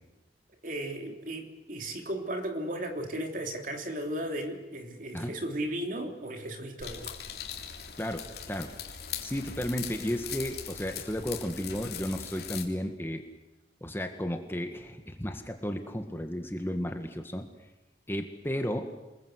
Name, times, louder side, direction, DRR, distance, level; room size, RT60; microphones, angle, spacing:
voice 1, 0.6-7.2, right 1 dB, 50° right, 4 dB, 3.4 m, -35 dB
sound 1, 6.8-12.6, left 8 dB, 65° left, 3.2 m, -40 dB
voice 2, 8.0-8.7 9.2-13.2 13.8-17.5 18.1-18.9, equal, 15° left, 5 dB, 1.7 m, -33 dB
28.5 x 21.5 x 8.2 m, 1.0 s
head